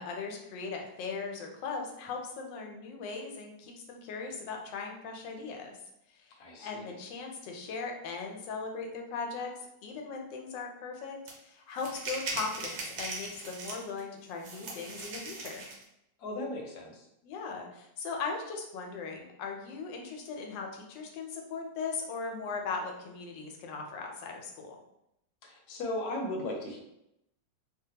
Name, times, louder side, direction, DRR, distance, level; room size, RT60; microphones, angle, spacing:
voice 1, 0.0-5.8 6.1-15.7 17.2-24.8, left 4 dB, 85° left, 2 dB, 1.3 m, -39 dB
voice 2, 6.4-7.0 16.2-17.1 25.4-26.8, left 1 dB, 65° left, 1 dB, 1.1 m, -37 dB
sound 1, 11.3-11.4 11.8-14.0 14.4-15.8, right 3 dB, 90° right, 1.4 m, -39 dB
3.2 x 2.2 x 2.8 m, 0.81 s
omnidirectional pair, 1.9 m